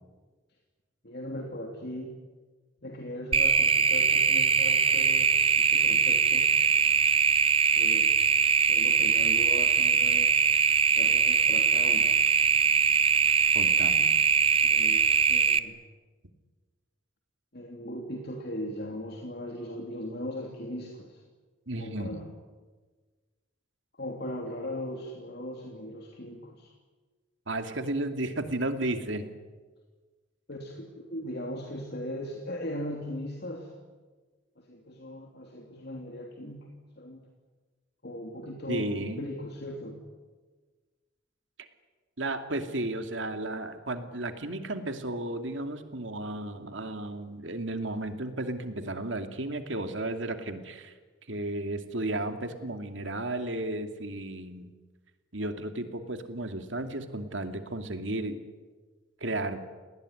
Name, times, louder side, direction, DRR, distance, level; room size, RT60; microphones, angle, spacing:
voice 1, 1.0-2.1 2.8-6.5 7.7-8.1 8.7-10.5 11.0-12.1 14.6-15.8 17.5-21.2 21.8-22.3 23.9-26.7 30.5-33.7 34.6-37.2 38.0-40.0 42.6-42.7, left 1 dB, 55° left, 1 dB, 3.1 m, -38 dB
sound 1, 3.3-15.6, right 6 dB, 30° right, 0.9 m, -22 dB
voice 2, 13.5-14.1 21.7-22.2 27.5-29.3 38.7-39.2 42.2-50.9 51.3-54.7 55.3-58.4 59.2-59.6, right 2 dB, 70° right, 7 dB, 2.6 m, -33 dB
29.0 x 19.5 x 9.9 m, 1.4 s
head